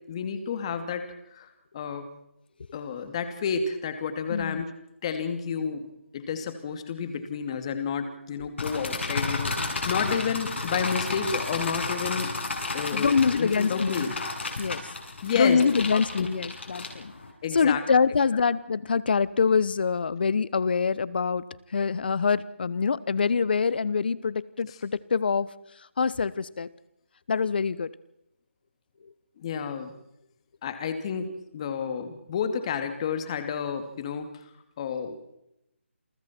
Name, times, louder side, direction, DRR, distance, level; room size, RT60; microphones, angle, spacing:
voice 1, 0.1-1.0 1.3-1.5 1.7-2.1 2.7-4.7 5.0-5.9 6.1-12.3 12.7-14.1 15.2-15.6 15.9-16.3 17.4-17.8 24.7-24.8 29.4-29.9 30.6-34.3 34.8-35.2, left 6 dB, 30° left, 8 dB, 2.6 m, -31 dB
voice 2, 4.3-4.6 12.9-14.1 14.6-14.9 15.3-17.1 17.5-21.4 21.7-25.5 26.0-26.7 27.3-27.9, left 5 dB, 50° left, 20 dB, 1.0 m, -25 dB
sound 1, 8.6-17.3, left 3 dB, 70° left, 6.9 m, -32 dB
29.0 x 23.0 x 4.5 m, 0.82 s
figure-of-eight pair, 165°, 7 cm